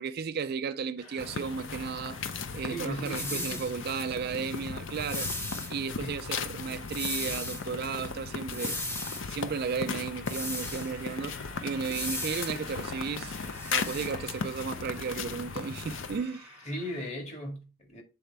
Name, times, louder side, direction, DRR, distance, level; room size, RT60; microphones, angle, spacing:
voice 1, 0.0-2.2 2.5-8.8 9.3-11.3 11.6-13.4 13.7-16.5, right 5 dB, 45° right, 0.3 m, -34 dB
sound 1, 1.0-17.1, left 2 dB, 85° left, 2.4 m, -51 dB
sound 2, 1.2-16.2, left 5 dB, 55° left, 0.6 m, -37 dB
voice 2, 2.7-3.7 6.0-6.2 16.6-18.0, equal, 30° left, 1.7 m, -37 dB
sound 3, 3.0-3.7 4.9-5.7 6.9-7.6 8.5-9.2 10.3-10.9 11.9-12.6 13.4-14.1, left 1 dB, 10° left, 0.7 m, -36 dB
7.9 x 4.1 x 3.4 m
head